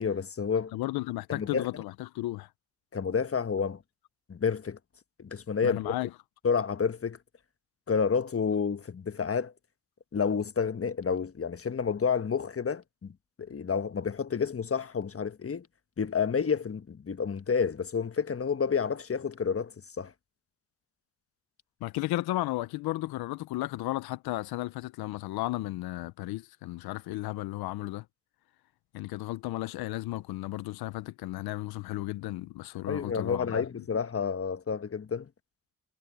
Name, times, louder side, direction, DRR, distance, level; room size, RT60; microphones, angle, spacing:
voice 1, 0.0-0.7 1.3-1.8 2.9-3.8 4.3-4.8 5.2-5.9 6.4-7.2 7.9-9.5 10.1-13.1 13.4-15.7 16.0-19.7 20.0-20.1 32.9-35.3, left 6 dB, 40° left, 1.3 m, -29 dB
voice 2, 0.7-2.5 5.6-6.1 21.8-28.0 28.9-33.6, left 17 dB, 85° left, 0.8 m, -34 dB
supercardioid pair, 45°, 36 cm